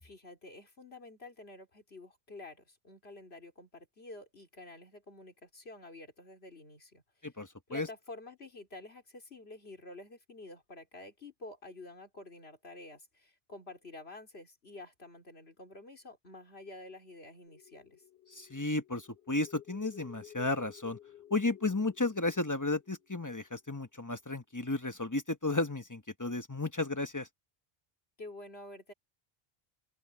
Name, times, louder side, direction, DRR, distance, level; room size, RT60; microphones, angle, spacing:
voice 1, 0.0-7.3 7.7-18.0 28.2-28.9, left 2 dB, 85° left, 3.7 m, -49 dB
voice 2, 7.2-7.9 18.3-21.0 21.3-27.3, left 2 dB, 20° left, 1.0 m, -33 dB
sound 1, 17.5-24.0, left 11 dB, 65° left, 4.8 m, -55 dB
open air
omnidirectional pair, 1.0 m